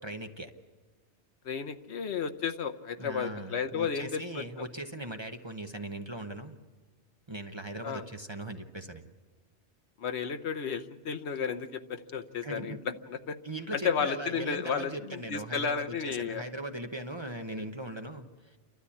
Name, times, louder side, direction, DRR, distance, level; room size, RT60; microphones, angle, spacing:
voice 1, 0.0-0.5 3.0-6.6 7.3-9.0 12.4-12.8 13.4-18.6, right 1 dB, 25° right, 5 dB, 0.8 m, -39 dB
voice 2, 1.4-4.7 7.8-8.0 10.0-12.7 13.1-13.3 13.8-16.4, left 6 dB, 70° left, 9 dB, 1.1 m, -33 dB
29.5 x 12.5 x 8.4 m, 1.4 s
omnidirectional pair, 1.2 m